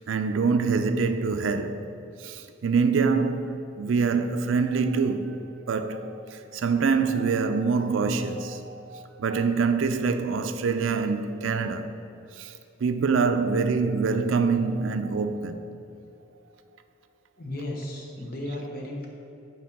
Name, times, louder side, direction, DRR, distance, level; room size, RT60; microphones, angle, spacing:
voice 1, 0.0-1.8 2.2-5.4 5.7-11.9 12.4-12.5 12.8-15.6, right 5 dB, 80° right, 0.4 m, -25 dB
voice 2, 17.4-19.1, left 1 dB, 45° left, 1.0 m, -34 dB
5.8 x 4.6 x 6.0 m
head